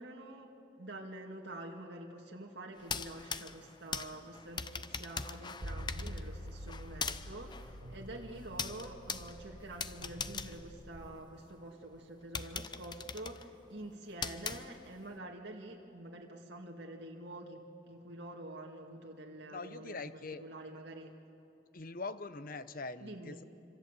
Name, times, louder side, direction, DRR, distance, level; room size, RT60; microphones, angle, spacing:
voice 1, 0.0-20.0 20.4-21.2 23.0-23.4, right 1 dB, 60° right, 0 dB, 2.3 m, -47 dB
sound 1, 2.8-11.5 11.9-12.0 12.3-15.1, left 5 dB, 25° left, 0.6 m, -42 dB
sound 2, 5.6-11.2, equal, 90° right, 2.7 m, -47 dB
voice 2, 19.5-20.4 21.7-23.4, left 3 dB, 45° left, 12 dB, 0.9 m, -43 dB
26.5 x 26.5 x 8.3 m, 2.8 s
head